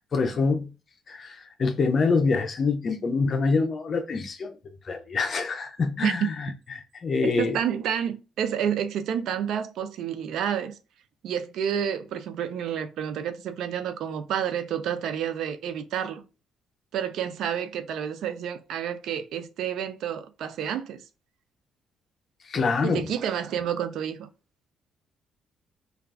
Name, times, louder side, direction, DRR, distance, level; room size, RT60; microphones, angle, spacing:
voice 1, 0.1-0.7 1.1-4.6 4.8-7.6 22.4-23.1, left 4 dB, 45° left, 0.5 m, -26 dB
voice 2, 7.4-10.8 11.2-16.2 16.9-21.0 22.8-24.3, right 9 dB, 75° right, 0.3 m, -29 dB
2.3 x 2.2 x 3.3 m
supercardioid pair, 75°, 0 cm